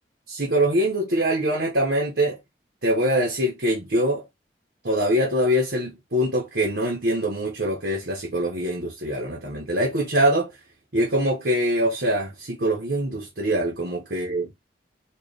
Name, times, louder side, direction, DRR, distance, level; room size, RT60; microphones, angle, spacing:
voice 1, 0.3-2.4 2.8-4.2 4.8-10.5 10.9-14.5, right 1 dB, 70° right, 1.4 m, -23 dB
4.6 x 2.8 x 3.4 m
head